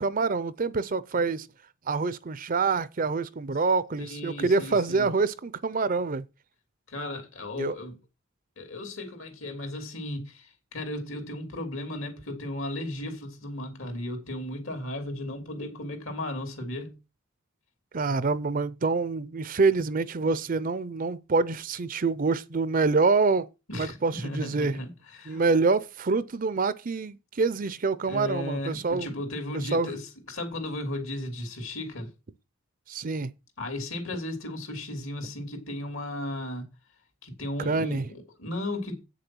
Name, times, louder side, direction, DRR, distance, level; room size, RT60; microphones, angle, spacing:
voice 1, 0.0-1.5 1.9-6.3 7.6-7.7 17.9-23.5 23.7-24.8 25.3-29.1 29.5-29.9 32.9-33.3 37.6-38.1, right 4 dB, 40° right, 0.6 m, -26 dB
voice 2, 4.0-5.1 6.9-8.0 8.6-16.9 23.7-25.4 28.1-32.1 33.6-36.7 37.2-39.0, left 1 dB, 70° left, 3.2 m, -35 dB
8.6 x 6.8 x 6.2 m
head